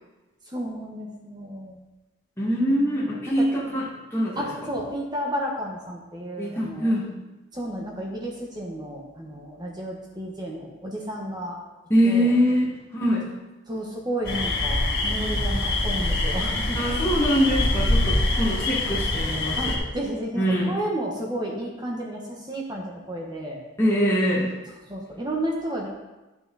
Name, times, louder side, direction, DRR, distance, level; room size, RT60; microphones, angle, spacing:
voice 1, 0.5-1.8 2.8-3.5 4.3-6.9 7.5-11.6 12.0-12.3 13.7-16.8 19.6-23.6 24.9-25.9, right 1 dB, 20° right, -2 dB, 1.2 m, -32 dB
voice 2, 2.4-4.4 6.4-7.1 11.9-13.3 16.8-19.7 20.4-20.7 23.8-24.5, equal, 15° left, -8 dB, 2.0 m, -23 dB
sound 1, 14.2-19.8, left 2 dB, 50° left, 2.1 m, -24 dB
12.0 x 6.0 x 4.1 m, 1.1 s
head